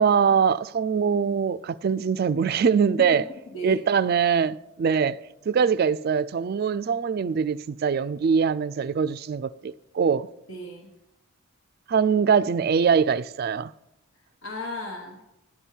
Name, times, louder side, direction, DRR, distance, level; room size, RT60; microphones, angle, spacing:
voice 1, 0.0-3.2 3.6-5.2 5.5-10.3 11.9-13.7, right 6 dB, 45° right, 0.3 m, -23 dB
voice 2, 3.0-3.8 10.5-10.9 14.1-15.2, left 1 dB, 65° left, 1.3 m, -36 dB
12.0 x 4.5 x 8.3 m
head